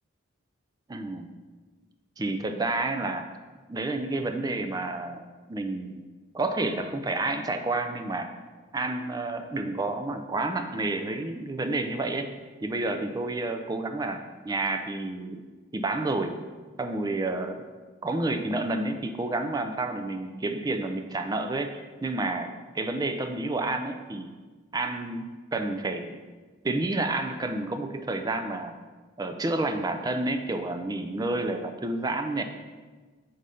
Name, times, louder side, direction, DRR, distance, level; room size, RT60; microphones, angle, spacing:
voice 1, 0.9-1.3 2.2-3.2 3.7-5.2 5.5-6.0 6.3-8.3 8.7-12.3 12.6-15.4 15.7-16.4 16.8-17.7 18.0-24.3 24.7-26.2 26.6-28.7 29.2-32.4, right 2 dB, 20° right, 6 dB, 0.3 m, -30 dB
4.9 x 3.9 x 5.5 m, 1.4 s
head